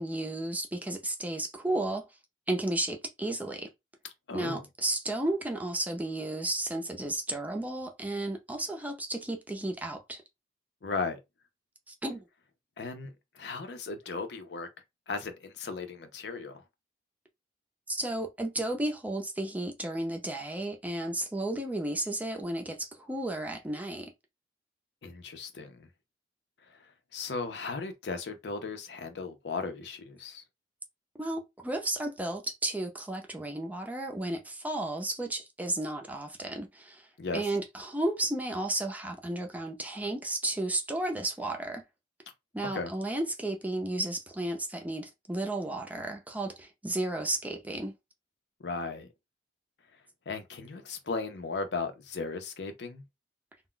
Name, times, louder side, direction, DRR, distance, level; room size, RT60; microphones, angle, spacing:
voice 1, 0.0-2.1 2.5-3.7 4.3-10.2 11.9-12.3 17.9-24.1 31.2-37.1 37.3-41.8 42.5-47.9, right 1 dB, 10° right, 0.5 m, -33 dB
voice 2, 4.3-4.7 10.8-11.2 12.8-14.7 15.1-16.6 25.0-25.9 26.7-30.4 37.2-37.4 42.7-42.9 48.6-49.1 50.3-53.0, left 4 dB, 70° left, 0.6 m, -36 dB
2.3 x 2.1 x 3.7 m
head